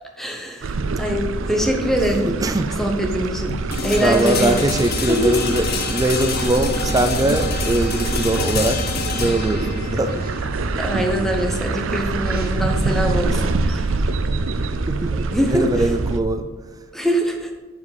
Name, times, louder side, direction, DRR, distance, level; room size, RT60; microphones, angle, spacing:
voice 1, 0.2-2.3 2.7-3.5 3.8-4.7 5.0-5.4 10.8-14.1 15.3-15.9 16.9-17.5, equal, ahead, 2 dB, 1.0 m, -23 dB
sound 1, 0.6-16.2, right 3 dB, 85° right, 0.5 m, -25 dB
voice 2, 2.2-2.7 4.0-10.3 14.7-16.5, right 1 dB, 20° right, 8 dB, 0.4 m, -22 dB
sound 2, 3.7-13.6, left 5 dB, 50° left, 0.8 m, -29 dB
sound 3, 4.0-13.6, right 1 dB, 50° right, 1.7 m, -37 dB
7.4 x 7.2 x 4.1 m, 1.2 s
head